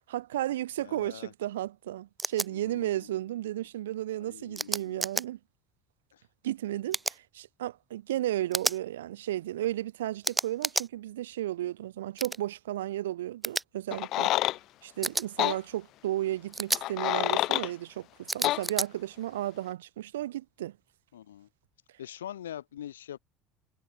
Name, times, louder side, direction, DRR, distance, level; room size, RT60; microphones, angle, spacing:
voice 1, 0.1-5.4 6.4-14.3 14.8-20.8, right 13 dB, 80° right, 4.1 m, -34 dB
voice 2, 0.8-1.3 2.5-3.2 4.1-5.0 6.1-6.2 21.1-21.5 22.0-23.2, left 11 dB, 85° left, 7.8 m, -44 dB
sound 1, 2.2-2.5 4.6-5.2 6.9-7.2 8.5-8.8 10.2-10.9 12.2-12.4 13.4-13.6 15.0-15.3 16.5-16.8 18.3-18.9, right 2 dB, 15° right, 1.6 m, -30 dB
sound 2, 13.9-14.6 15.4-15.6 16.7-17.7 18.4-18.6, left 16 dB, 60° left, 0.5 m, -27 dB
hypercardioid pair, 70°, 0 cm